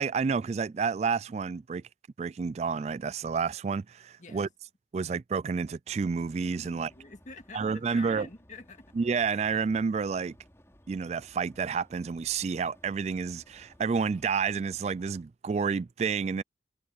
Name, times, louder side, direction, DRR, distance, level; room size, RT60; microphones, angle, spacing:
voice 1, 0.0-1.8 2.2-4.5 4.9-6.9 7.5-8.3 9.0-10.3 10.9-16.4, right 5 dB, 40° right, 0.3 m, -30 dB
sound 1, 5.9-15.2, equal, 15° left, 5.6 m, -59 dB
voice 2, 6.6-8.9, left 3 dB, 45° left, 2.0 m, -47 dB
head